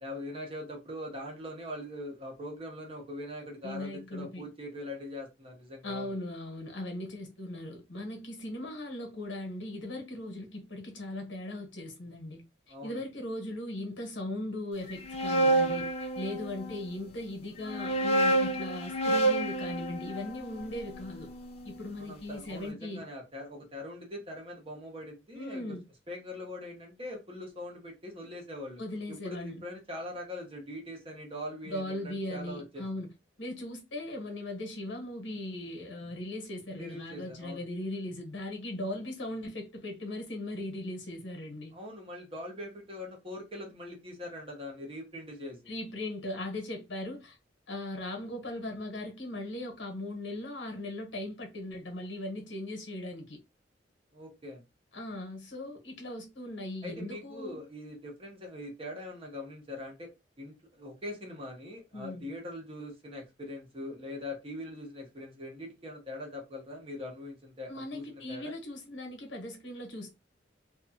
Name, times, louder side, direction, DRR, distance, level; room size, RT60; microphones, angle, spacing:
voice 1, 0.0-6.1 12.7-13.0 22.0-25.8 26.1-28.8 29.1-32.8 36.8-37.6 41.7-45.7 54.1-54.6 56.8-60.1 60.4-68.5, left 1 dB, 30° right, 1.0 m, -42 dB
voice 2, 3.6-4.5 5.8-12.4 12.7-21.3 21.6-23.1 25.3-25.9 28.8-29.6 31.6-33.1 33.4-41.7 45.7-47.4 47.7-53.4 54.9-57.6 61.9-62.3 67.7-70.1, left 1 dB, 85° left, 1.1 m, -38 dB
sound 1, 14.9-16.8 17.6-21.7, right 2 dB, 35° left, 0.5 m, -29 dB
2.6 x 2.3 x 2.7 m
head